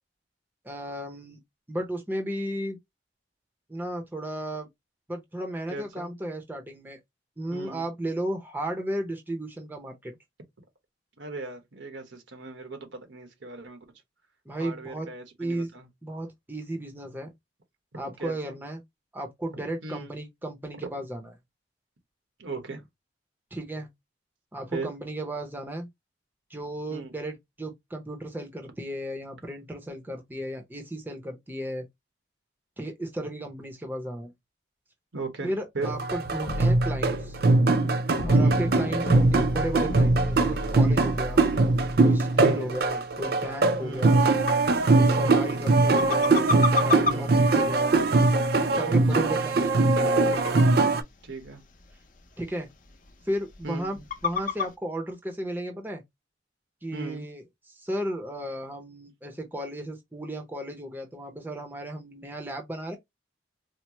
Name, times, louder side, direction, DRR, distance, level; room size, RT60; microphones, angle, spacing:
voice 1, 0.6-1.4 1.7-2.8 3.7-4.7 5.1-7.0 7.4-10.1 14.5-15.1 15.4-15.7 16.0-17.3 17.9-18.8 19.1-21.3 23.5-23.9 24.5-25.9 26.5-31.8 32.8-34.3 35.4-37.4 38.2-41.4 42.0-44.2 45.0-48.0 48.6-50.4 52.4-52.7 53.3-56.0 56.8-63.0, right 1 dB, 10° right, 0.6 m, -34 dB
voice 2, 5.7-6.1 7.5-7.9 11.2-13.8 14.6-15.9 18.2-18.5 19.8-20.1 22.4-22.8 24.7-24.9 26.9-27.1 35.1-35.9 38.4-38.8 42.4-42.7 43.8-44.2 45.2-45.6 47.0-47.5 48.9-49.3 51.2-51.6 53.6-54.0 56.9-57.3, right 3 dB, 90° right, 1.1 m, -38 dB
sound 1, 35.8-51.0, right 3 dB, 55° right, 0.4 m, -22 dB
sound 2, 36.5-42.0, left 1 dB, 80° left, 0.7 m, -35 dB
sound 3, 39.1-54.7, left 4 dB, 45° left, 0.6 m, -36 dB
4.3 x 2.0 x 2.9 m
head